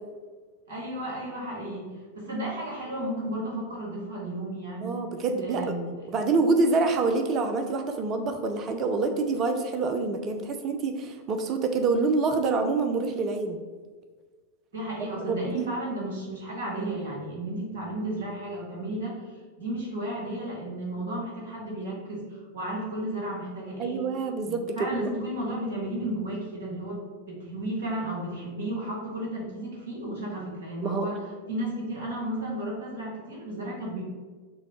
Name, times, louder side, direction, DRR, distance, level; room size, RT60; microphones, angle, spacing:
voice 1, 0.7-5.0 5.4-5.9 14.7-19.2 19.6-24.1 24.4-31.2 31.5-34.0, right 1 dB, 60° right, -3 dB, 1.5 m, -33 dB
voice 2, 4.8-5.7 6.1-13.6 15.3-15.7 23.8-25.1 30.8-31.1, right 3 dB, 30° right, 6 dB, 0.5 m, -26 dB
6.1 x 2.2 x 3.0 m, 1.4 s
figure-of-eight pair, 90°, 0 cm